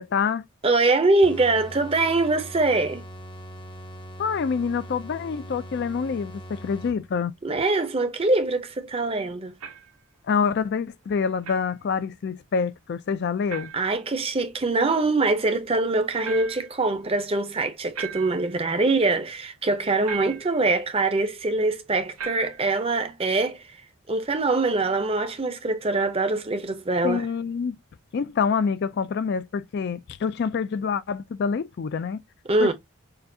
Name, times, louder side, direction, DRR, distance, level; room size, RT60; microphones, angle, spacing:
voice 1, 0.0-0.4 4.2-7.3 10.3-13.7 27.0-27.8 28.1-32.2 32.6-32.7, left 6 dB, 50° left, 0.3 m, -26 dB
voice 2, 0.6-3.0 7.4-9.6 13.7-23.8 24.1-27.3 32.5-32.7, right 3 dB, 25° right, 0.6 m, -23 dB
sound 1, 1.2-7.3, equal, 20° left, 0.7 m, -41 dB
sound 2, 9.6-10.0 11.4-11.7 13.5-13.9 16.2-16.8 17.9-18.5 20.1-20.6 22.2-22.7, right 7 dB, 90° right, 1.4 m, -37 dB
6.6 x 2.4 x 2.7 m
head